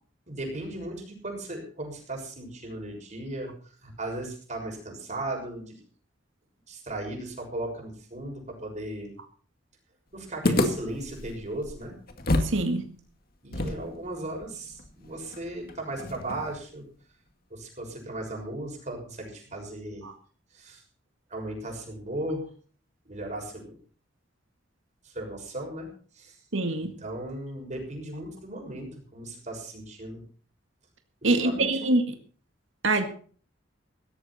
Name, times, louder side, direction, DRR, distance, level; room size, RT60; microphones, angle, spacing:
voice 1, 0.3-3.5 3.8-5.8 6.7-9.1 10.1-11.9 13.4-16.8 17.5-20.1 20.5-20.8 21.3-22.5 23.0-23.7 25.0-25.9 26.1-26.4 26.8-30.2 31.2-31.9, right 1 dB, 40° right, 1 dB, 6.4 m, -36 dB
sound 1, 10.4-12.6 12.9-13.0 13.5-16.6, left 1 dB, 50° left, 2.1 m, -30 dB
voice 2, 12.4-12.8 20.0-20.1 26.5-26.9 31.2-32.0 32.8-33.1, right 2 dB, 80° right, 6 dB, 2.0 m, -24 dB
18.0 x 13.5 x 4.3 m, 0.43 s
head